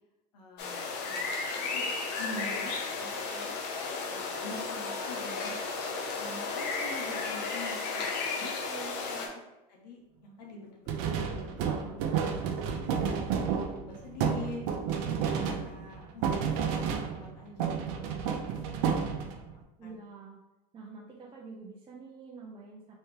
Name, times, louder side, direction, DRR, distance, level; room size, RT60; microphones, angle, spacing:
voice 1, 0.3-1.3 1.7-1.9 2.2-3.8 4.1-5.6 6.2-8.5 9.7-11.1 11.3-13.1 13.6-18.2 18.5-19.1 19.8-20.0, left 2 dB, 90° left, -1 dB, 1.1 m, -46 dB
sound 1, 0.6-9.3, left 4 dB, 55° left, 0.9 m, -34 dB
voice 2, 8.5-9.3 19.8-20.4 20.7-22.9, right 4 dB, 25° right, -2 dB, 0.6 m, -47 dB
sound 2, 10.9-17.3 17.6-19.5, right 7 dB, 70° right, 0.6 m, -31 dB
3.3 x 3.2 x 3.2 m, 0.98 s
supercardioid pair, 100°, 21 cm